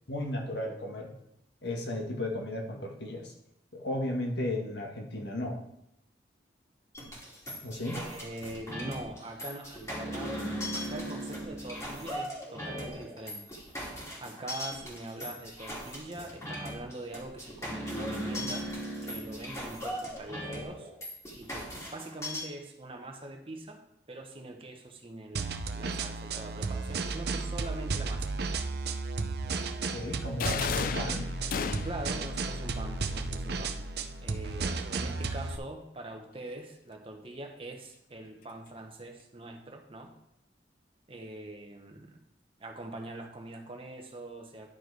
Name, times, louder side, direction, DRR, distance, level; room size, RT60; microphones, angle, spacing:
voice 1, 0.1-1.1 1.6-3.3 3.7-5.6 7.6-8.0 29.9-31.3, left 1 dB, 70° left, 0 dB, 1.6 m, -34 dB
sound 1, 6.9-22.4, equal, 15° left, 2.4 m, -38 dB
voice 2, 7.9-10.4 10.7-13.5 14.2-18.7 19.0-20.9 21.4-23.8 24.1-28.3 31.7-33.8 34.2-40.1 41.1-42.2 42.6-44.7, right 2 dB, 30° right, 3 dB, 1.0 m, -43 dB
sound 2, 25.3-35.6, right 3 dB, 60° right, 0.6 m, -33 dB
sound 3, 30.4-32.1, left 6 dB, 50° left, 0.4 m, -33 dB
11.0 x 4.7 x 4.7 m, 0.78 s
head